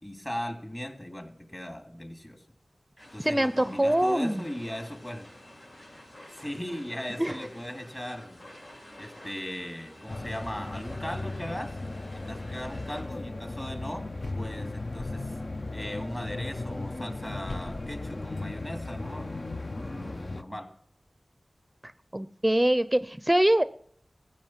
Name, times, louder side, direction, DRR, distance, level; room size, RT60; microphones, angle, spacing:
voice 1, 0.0-2.4 3.1-5.3 6.3-8.4 9.0-11.8 12.1-14.1 14.3-15.4 15.7-19.4 19.7-20.7, equal, 25° left, 5 dB, 2.9 m, -38 dB
sound 1, 3.0-13.0, left 1 dB, 80° left, 5.7 m, -50 dB
voice 2, 3.2-4.4 7.2-7.3 22.1-23.6, right 1 dB, 15° right, 14 dB, 0.6 m, -23 dB
sound 2, 10.1-20.4, left 2 dB, 50° left, 0.7 m, -36 dB
14.5 x 8.7 x 7.4 m, 0.62 s
wide cardioid pair, 55°, 0 cm